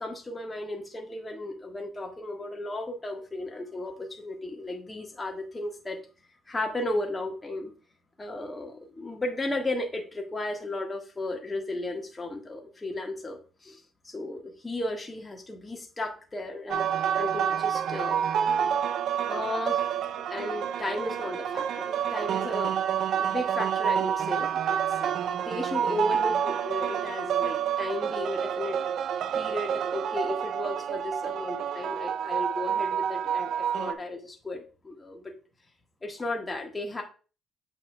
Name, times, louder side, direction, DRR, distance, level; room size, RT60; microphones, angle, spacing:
voice 1, 0.0-6.0 6.5-7.7 8.2-18.2 19.3-19.9 20.3-22.8 23.2-28.9 29.3-35.3 36.0-37.0, left 2 dB, 20° left, 1 dB, 1.5 m, -35 dB
sound 1, 16.7-33.9, right 8 dB, 70° right, 0.4 m, -28 dB
7.6 x 5.7 x 2.2 m, 0.35 s
cardioid pair, 90°, 0 cm